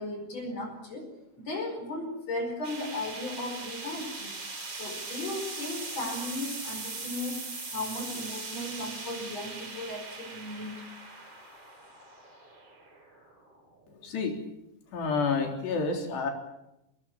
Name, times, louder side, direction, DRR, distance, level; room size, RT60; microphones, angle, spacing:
voice 1, 0.0-10.9, left 2 dB, 40° left, 3 dB, 5.9 m, -36 dB
sound 1, 2.6-13.8, right 3 dB, 35° right, 6.2 m, -40 dB
voice 2, 14.0-14.3 14.9-16.3, left 4 dB, 75° left, 2 dB, 5.9 m, -29 dB
25.0 x 20.5 x 7.3 m, 0.87 s
omnidirectional pair, 5.0 m